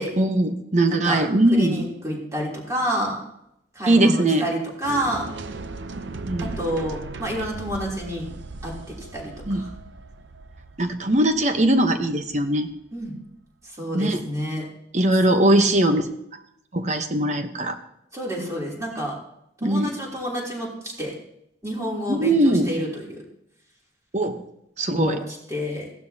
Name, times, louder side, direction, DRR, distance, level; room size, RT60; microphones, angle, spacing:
voice 1, 0.2-1.9 3.9-4.5 6.0-6.5 9.5-9.6 10.8-12.7 13.9-14.2 14.9-16.1 16.7-17.8 19.6-19.9 22.1-22.7 24.1-24.4 24.8-25.2, right 1 dB, 40° right, 7 dB, 1.0 m, -20 dB
voice 2, 0.9-1.2 1.5-3.2 3.7-5.3 6.4-8.3 8.6-9.7 12.9-13.1 13.6-14.6 18.1-19.2 19.6-21.1 21.6-23.2 24.9-25.2 25.5-25.9, equal, 20° right, -3 dB, 3.2 m, -29 dB
sound 1, 4.8-12.9, right 3 dB, 90° right, 0.7 m, -38 dB
16.0 x 12.0 x 2.8 m, 0.77 s
head